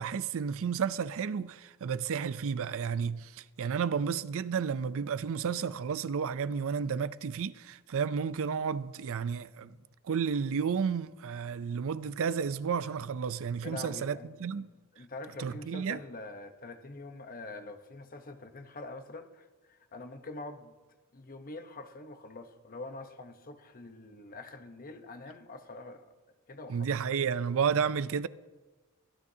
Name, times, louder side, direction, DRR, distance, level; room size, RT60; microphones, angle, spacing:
voice 1, 0.0-9.8 10.0-14.7 15.4-16.0 26.7-28.3, right 6 dB, 65° right, 0.4 m, -32 dB
voice 2, 13.6-14.3 14.6-14.7 14.9-20.7 21.1-26.1 26.5-26.9, left 2 dB, 40° left, 0.9 m, -45 dB
23.5 x 12.0 x 2.8 m
head